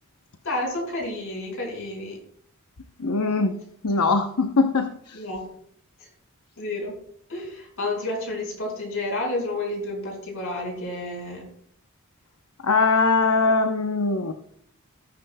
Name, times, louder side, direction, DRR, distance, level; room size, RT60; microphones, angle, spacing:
voice 1, 0.4-2.2 5.1-5.4 6.6-7.0 7.3-11.4, left 2 dB, 70° left, 0 dB, 5.4 m, -30 dB
voice 2, 3.0-3.5 3.8-5.2 12.6-14.3, left 3 dB, 85° left, 6 dB, 0.8 m, -21 dB
19.0 x 9.8 x 2.2 m, 0.67 s
head